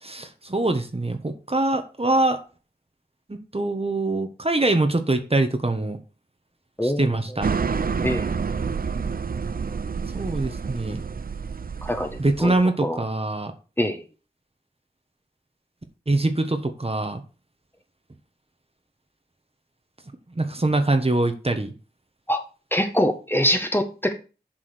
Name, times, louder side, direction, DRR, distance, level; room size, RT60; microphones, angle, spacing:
voice 1, 0.0-2.4 3.3-6.0 6.8-7.5 10.1-11.0 12.2-13.5 16.1-17.2 20.4-21.7, right 2 dB, 35° right, 6 dB, 1.4 m, -23 dB
sound 1, 7.4-12.6, right 5 dB, 55° right, 0.6 m, -28 dB
voice 2, 8.0-8.5 11.8-12.6 12.8-13.0 13.8-14.0 22.3-22.4 22.7-24.1, equal, 10° left, 5 dB, 1.5 m, -24 dB
7.9 x 4.8 x 6.2 m, 0.34 s
cardioid pair, 40°, 17 cm